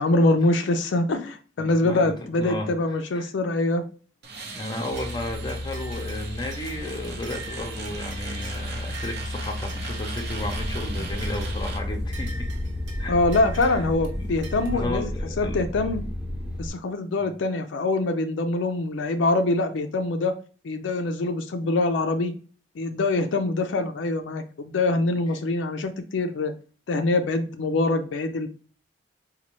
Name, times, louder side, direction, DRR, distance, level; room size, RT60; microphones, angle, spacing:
voice 1, 0.0-3.8 13.1-16.0 16.6-20.4 20.6-22.3 22.8-26.5 26.9-28.5, left 2 dB, 80° left, 0.4 m, -24 dB
voice 2, 1.6-2.1 2.3-3.3 4.5-12.5 13.0-13.1 13.5-13.8 14.1-15.6, left 1 dB, 25° left, 0.6 m, -34 dB
sound 1, 4.2-11.8, right 3 dB, 60° right, 0.7 m, -39 dB
sound 2, 4.9-14.7, left 1 dB, 90° right, 0.9 m, -34 dB
sound 3, 10.4-16.7, left 1 dB, 5° right, 0.8 m, -32 dB
4.2 x 2.2 x 2.9 m
head